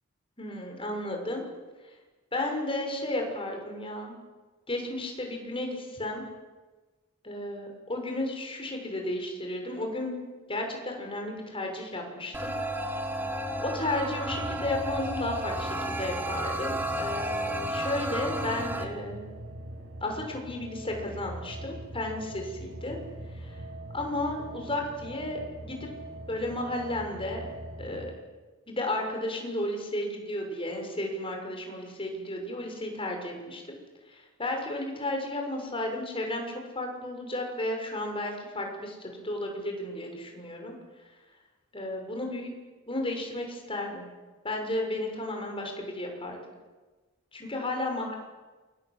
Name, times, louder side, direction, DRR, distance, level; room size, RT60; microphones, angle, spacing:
voice 1, 0.4-1.4 2.3-4.2 4.7-6.2 7.2-10.2 10.5-12.5 13.6-19.3 20.0-23.0 23.4-23.6 23.9-25.9 26.3-27.5 27.8-28.1 28.7-33.7 34.1-40.7 41.7-42.5 42.9-44.1 44.4-46.4 47.3-48.1, left 1 dB, 25° left, 2 dB, 6.5 m, -33 dB
sound 1, 12.3-18.9, right 1 dB, 10° right, 2.8 m, -32 dB
sound 2, 14.3-28.1, right 1 dB, 90° right, 7.1 m, -42 dB
28.5 x 23.5 x 8.4 m, 1.3 s
head